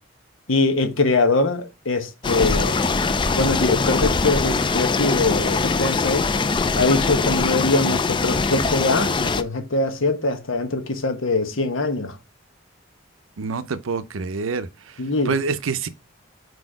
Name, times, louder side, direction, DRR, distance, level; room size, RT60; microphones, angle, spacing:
voice 1, 0.5-2.8 3.3-6.3 6.7-12.2 15.0-15.3, left 3 dB, 80° left, 1.1 m, -22 dB
sound 1, 2.2-9.4, left 4 dB, 25° left, 0.4 m, -22 dB
voice 2, 13.4-14.9 15.3-15.9, right 4 dB, 90° right, 0.6 m, -26 dB
4.8 x 4.1 x 4.8 m
head